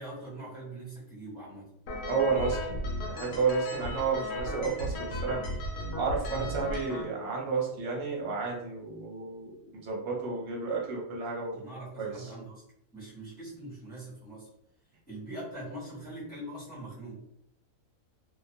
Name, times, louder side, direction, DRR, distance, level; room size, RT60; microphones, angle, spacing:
voice 1, 0.0-1.7 6.3-6.5 11.5-12.6 12.9-14.5 15.1-17.4, right 2 dB, 5° left, -9 dB, 0.9 m, -42 dB
sound 1, 1.9-7.0, left 1 dB, 85° left, 1.2 m, -35 dB
voice 2, 2.1-2.6 3.1-5.4 5.9-11.6 12.0-12.3, right 5 dB, 55° right, -2 dB, 0.9 m, -31 dB
2.4 x 2.3 x 2.6 m, 0.75 s
omnidirectional pair, 1.6 m